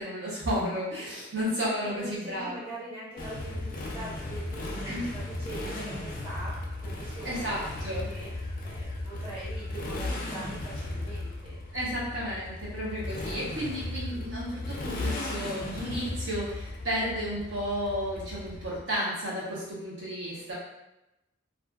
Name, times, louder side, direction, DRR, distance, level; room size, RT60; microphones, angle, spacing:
voice 1, 0.0-2.6 4.8-5.0 7.2-8.1 11.7-20.5, equal, 65° right, -6 dB, 0.8 m, -32 dB
voice 2, 1.7-11.6, right 1 dB, 25° right, -10 dB, 0.8 m, -43 dB
Motorcycle, 3.2-19.0, left 2 dB, 40° left, 0.3 m, -36 dB
2.5 x 2.4 x 2.3 m, 0.93 s
head